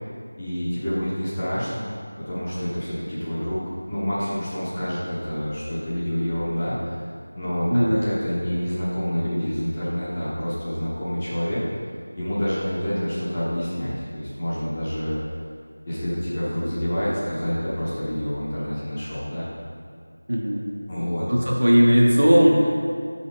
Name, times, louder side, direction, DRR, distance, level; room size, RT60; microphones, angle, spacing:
voice 1, 0.4-1.9 2.2-3.6 3.9-6.9 7.3-11.6 12.2-15.2 15.9-19.5 20.9-21.3, equal, 15° left, -11 dB, 1.2 m, -27 dB
voice 2, 7.7-8.1 20.3-20.7 21.3-22.9, equal, 50° right, -3 dB, 1.0 m, -18 dB
6.7 x 4.0 x 5.2 m, 2.2 s
figure-of-eight pair, 170°, 0 cm